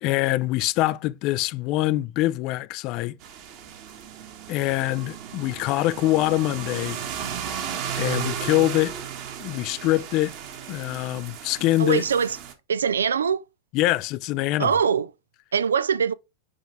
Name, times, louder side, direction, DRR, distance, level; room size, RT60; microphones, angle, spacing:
voice 1, 0.0-3.2 4.5-7.0 7.9-9.0 9.4-10.3 10.7-12.0 13.7-14.7, left 17 dB, 40° left, 0.4 m, -24 dB
sound 1, 3.2-12.5, right 8 dB, 45° right, 1.3 m, -35 dB
voice 2, 11.8-12.4 12.7-13.4 14.6-15.1 15.5-16.1, right 7 dB, 70° right, 0.4 m, -22 dB
6.8 x 5.1 x 3.3 m
figure-of-eight pair, 90°, 0 cm